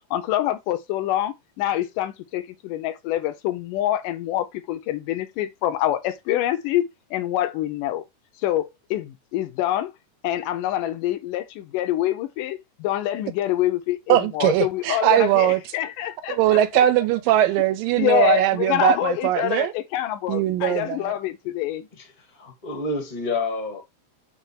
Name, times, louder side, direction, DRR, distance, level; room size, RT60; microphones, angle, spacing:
voice 1, 0.1-6.8 7.1-8.0 8.4-9.9 10.2-16.4 18.0-21.9, left 13 dB, 80° left, 1.9 m, -26 dB
voice 2, 14.1-15.7 16.3-19.7 20.3-21.2, right 13 dB, 85° right, 2.0 m, -20 dB
voice 3, 21.9-23.8, left 3 dB, 50° left, 0.5 m, -29 dB
7.1 x 3.3 x 4.4 m
omnidirectional pair, 4.4 m